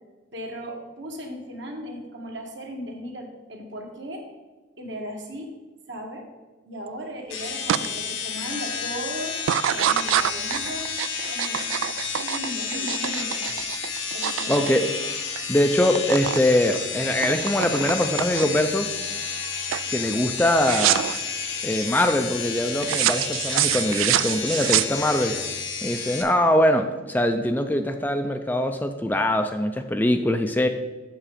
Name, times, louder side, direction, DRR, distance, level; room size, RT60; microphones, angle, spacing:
voice 1, 0.3-4.2 4.8-5.5 5.9-6.2 6.6-9.4 9.7-10.9 11.3-11.9 12.2-13.4 14.1-14.7, equal, 60° right, 1 dB, 1.7 m, -36 dB
sound 1, 7.3-26.2, left 5 dB, 80° left, 1.7 m, -31 dB
sound 2, 7.7-7.9 8.3-8.7 9.4-15.5 15.7-16.4 16.7-18.7 19.2-19.5 19.7-19.9 20.6-21.2 22.8-25.3, right 12 dB, 85° right, 0.3 m, -26 dB
voice 2, 14.5-14.9 15.5-18.9 19.9-21.1 21.6-25.3 25.8-30.7, left 1 dB, 10° left, 6 dB, 0.4 m, -22 dB
7.4 x 7.0 x 5.0 m, 1.2 s
head